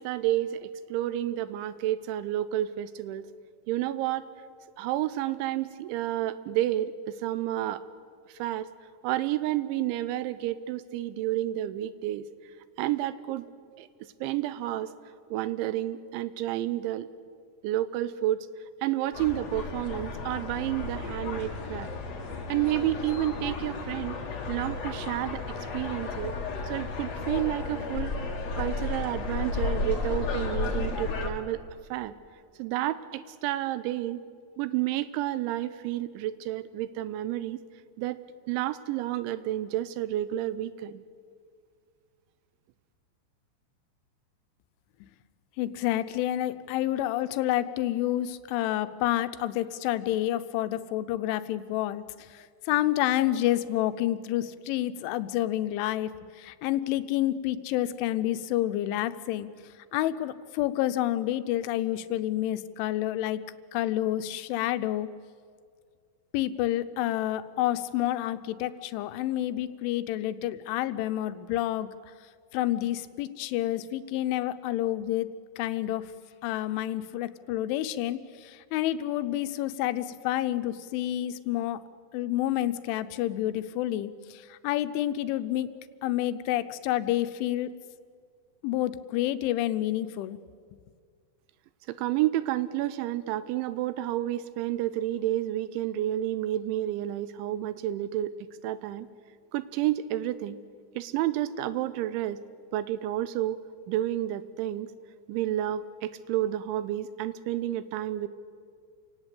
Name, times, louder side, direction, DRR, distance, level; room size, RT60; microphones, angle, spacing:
voice 1, 0.0-3.3 3.7-4.3 4.8-7.8 8.3-8.7 9.0-12.2 12.8-13.5 13.8-14.9 15.3-17.1 17.6-18.5 18.8-21.9 22.5-24.2 24.5-26.4 26.6-28.1 28.6-31.6 31.9-32.1 32.6-34.2 34.6-37.6 38.0-38.2 38.5-41.0 91.9-98.3 98.6-99.1 99.5-100.6 101.0-102.4 102.7-103.6 103.9-104.9 105.3-108.3, right 13 dB, 85° right, 15 dB, 3.1 m, -30 dB
sound 1, 19.1-31.3, left 4 dB, 45° left, 2.4 m, -33 dB
voice 2, 45.6-59.5 59.9-63.4 63.7-65.1 66.3-71.9 72.5-75.3 75.6-76.1 76.4-81.8 82.1-85.7 86.0-87.7 88.6-90.4, left 13 dB, 90° left, 12 dB, 3.2 m, -29 dB
28.0 x 18.0 x 8.3 m, 2.1 s
omnidirectional pair, 5.4 m